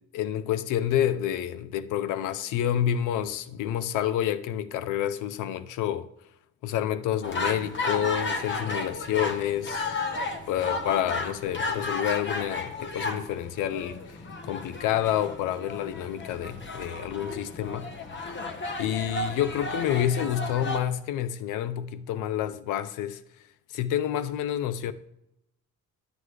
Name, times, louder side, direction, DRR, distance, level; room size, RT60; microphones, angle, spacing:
voice 1, 0.0-6.1 6.6-10.0 10.5-14.2 14.4-17.9 18.8-23.2 23.7-24.9, left 11 dB, 90° left, 0.5 m, -28 dB
sound 1, 7.2-20.8, left 3 dB, 40° left, 1.0 m, -33 dB
9.5 x 7.4 x 3.2 m
cardioid pair, 90°, 30 cm